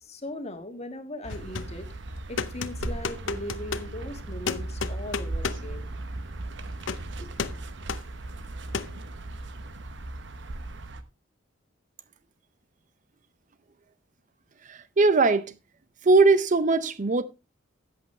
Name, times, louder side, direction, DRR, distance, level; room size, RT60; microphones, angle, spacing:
voice 1, 0.0-1.9 2.3-6.0 7.2-7.3, left 1 dB, 35° left, 1.6 m, -39 dB
sound 1, 1.2-11.0, right 2 dB, 65° right, 1.0 m, -37 dB
sound 2, 1.3-1.8 2.4-3.9 4.5-5.7 6.8-7.1 7.4-7.6 7.9-8.1 8.7-9.0, left 5 dB, 75° left, 0.7 m, -33 dB
voice 2, 14.7-15.5 16.0-17.2, right 3 dB, 40° right, 0.6 m, -20 dB
13.5 x 8.4 x 3.2 m
head